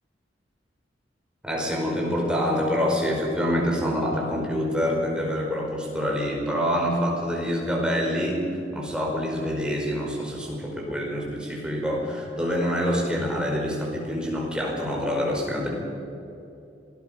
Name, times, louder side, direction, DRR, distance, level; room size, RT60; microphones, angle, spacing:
voice 1, 1.4-15.7, equal, 5° right, -2 dB, 5.2 m, -26 dB
27.0 x 19.5 x 5.8 m, 2.8 s
head